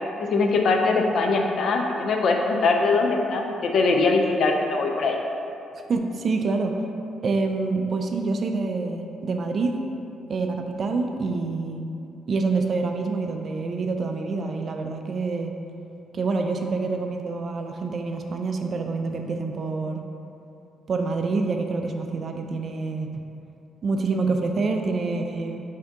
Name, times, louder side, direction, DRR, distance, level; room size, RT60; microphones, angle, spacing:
voice 1, 0.3-5.2, left 3 dB, 60° left, 2 dB, 0.4 m, -22 dB
voice 2, 5.9-6.8 7.2-9.7 10.3-11.9 12.3-15.6 16.1-20.1 20.9-23.1 23.8-25.6, right 3 dB, 50° right, 4 dB, 0.3 m, -26 dB
3.4 x 2.7 x 3.7 m, 2.8 s
cardioid pair, 90°, 0 cm